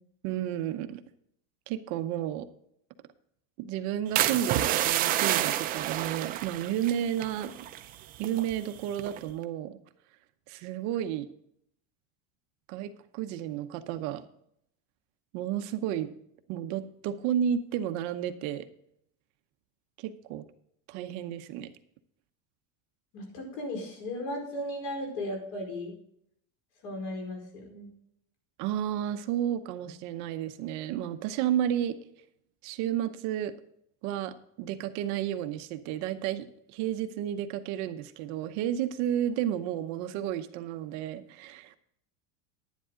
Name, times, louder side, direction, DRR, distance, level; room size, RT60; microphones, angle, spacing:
voice 1, 0.2-1.0 1.7-2.5 3.6-7.5 8.2-9.8 10.5-11.3 12.7-14.2 15.3-16.1 16.5-18.7 20.0-20.4 20.9-21.7 28.6-32.0 32.6-33.5 34.0-41.8, right 10 dB, 50° right, 10 dB, 0.8 m, -32 dB
sound 1, 4.2-7.9 8.2-8.5 9.0-9.3, right 13 dB, 25° right, 0.4 m, -29 dB
voice 2, 23.1-26.0 26.8-27.9, left 1 dB, 65° left, 2 dB, 4.6 m, -36 dB
10.5 x 10.5 x 3.7 m, 0.72 s
cardioid pair, 165°, 38 cm